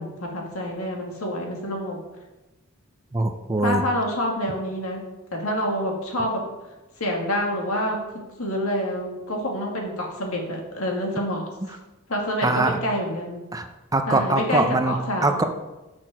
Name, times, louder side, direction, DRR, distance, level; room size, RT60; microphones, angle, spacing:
voice 1, 0.0-2.0 3.6-5.0 5.3-6.4 7.0-8.0 8.4-11.4 12.1-13.4 14.1-15.5, equal, 85° left, 0 dB, 1.9 m, -27 dB
voice 2, 3.1-3.8 12.4-12.8 13.5-13.7 13.9-14.9 15.2-15.4, right 2 dB, 15° right, 7 dB, 0.5 m, -22 dB
6.4 x 6.1 x 5.9 m, 1.1 s
head